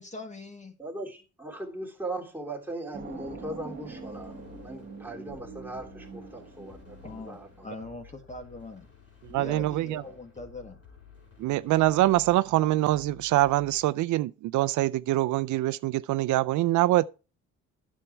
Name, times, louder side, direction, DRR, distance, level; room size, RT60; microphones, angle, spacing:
voice 1, 0.0-0.8 7.0-8.9 9.3-10.8, left 2 dB, 25° left, 1.9 m, -42 dB
voice 2, 0.8-7.7 10.0-10.2, right 2 dB, 5° right, 2.9 m, -39 dB
sound 1, 2.9-7.9, right 4 dB, 35° right, 2.7 m, -44 dB
sound 2, 3.7-13.9, left 7 dB, 50° left, 6.0 m, -53 dB
voice 3, 9.3-10.0 11.4-17.0, right 16 dB, 75° right, 0.5 m, -24 dB
9.9 x 7.4 x 4.5 m
cardioid pair, 90°, 30 cm